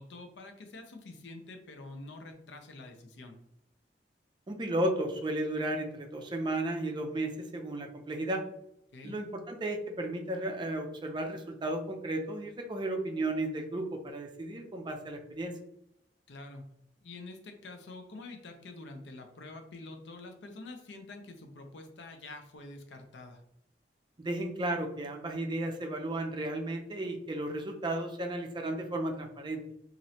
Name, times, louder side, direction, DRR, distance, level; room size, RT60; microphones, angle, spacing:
voice 1, 0.0-3.4 8.9-9.2 16.3-16.6 17.0-23.4, left 2 dB, 85° left, 5 dB, 0.6 m, -47 dB
voice 2, 4.5-8.4 9.0-15.6 24.2-29.6, right 1 dB, 25° right, 3 dB, 0.4 m, -34 dB
3.1 x 2.5 x 2.7 m, 0.81 s
head